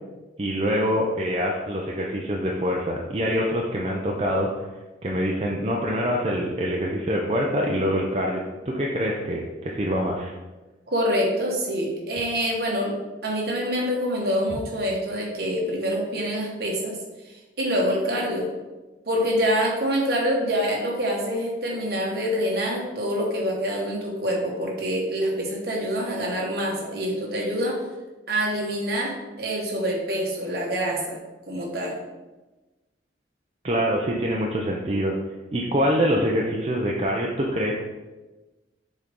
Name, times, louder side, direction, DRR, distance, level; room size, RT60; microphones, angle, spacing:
voice 1, 0.4-4.5 5.0-10.3 33.6-35.1 35.5-37.7, equal, 30° right, -2 dB, 0.5 m, -25 dB
voice 2, 10.9-13.0 13.2-17.0 17.6-18.5 19.1-27.8 28.3-31.2 31.5-32.0, equal, 55° right, -2 dB, 1.4 m, -26 dB
7.0 x 3.8 x 3.6 m, 1.2 s
head